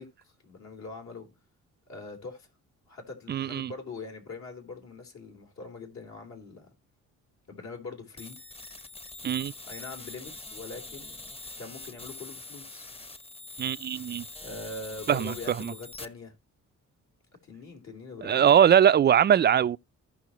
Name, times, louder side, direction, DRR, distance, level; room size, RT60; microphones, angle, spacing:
voice 1, 0.0-1.3 1.9-2.5 2.9-6.7 7.5-8.4 9.6-11.2 11.6-12.9 14.4-16.4 17.5-18.6, left 3 dB, 65° left, 3.7 m, -42 dB
voice 2, 3.3-3.7 9.2-9.5 13.6-14.2 15.1-15.7 18.2-19.8, right 9 dB, 35° right, 0.4 m, -21 dB
sound 1, 8.2-16.1, left 2 dB, 20° left, 1.0 m, -44 dB
16.5 x 5.7 x 3.0 m
cardioid pair, 90°, 30 cm